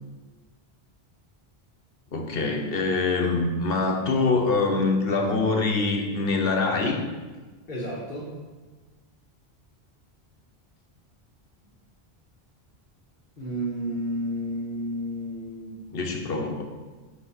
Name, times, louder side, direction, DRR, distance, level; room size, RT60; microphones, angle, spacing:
voice 1, 2.1-7.0 15.9-16.6, left 3 dB, 65° left, 2 dB, 1.2 m, -24 dB
voice 2, 7.7-8.3 13.4-15.8, equal, 50° left, -6 dB, 1.5 m, -31 dB
8.4 x 5.5 x 4.3 m, 1.3 s
omnidirectional pair, 1.1 m